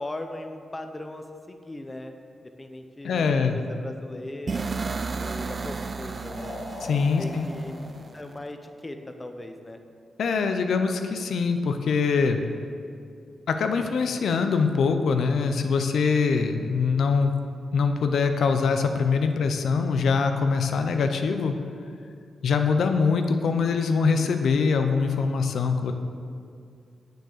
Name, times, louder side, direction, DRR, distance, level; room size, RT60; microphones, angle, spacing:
voice 1, 0.0-4.7 5.2-6.6 7.2-7.7 8.0-9.8, left 1 dB, 15° left, 6 dB, 0.7 m, -39 dB
voice 2, 3.0-3.6 6.9-7.5 10.2-12.4 13.5-17.3 17.7-21.5 22.4-25.9, left 5 dB, 75° left, 6 dB, 0.7 m, -23 dB
sound 1, 4.3-9.0, left 2 dB, 50° left, 2.6 m, -42 dB
sound 2, 4.5-8.4, right 4 dB, 35° right, 0.3 m, -33 dB
9.3 x 6.5 x 6.6 m, 2.3 s
wide cardioid pair, 135°, 0 cm